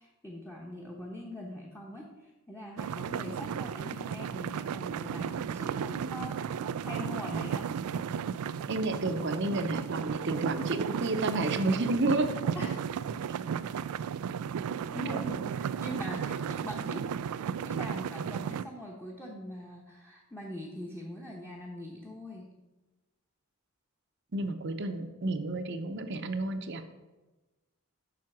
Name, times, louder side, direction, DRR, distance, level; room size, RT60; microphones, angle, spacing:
voice 1, 0.0-7.7 12.5-12.8 14.9-22.5, equal, 10° left, -3 dB, 0.9 m, -42 dB
sound 1, 2.8-18.6, right 7 dB, 85° right, 0.3 m, -34 dB
voice 2, 8.7-12.3 15.1-15.2 24.3-26.8, right 2 dB, 50° right, 8 dB, 0.7 m, -30 dB
7.6 x 5.7 x 5.9 m, 1.1 s
head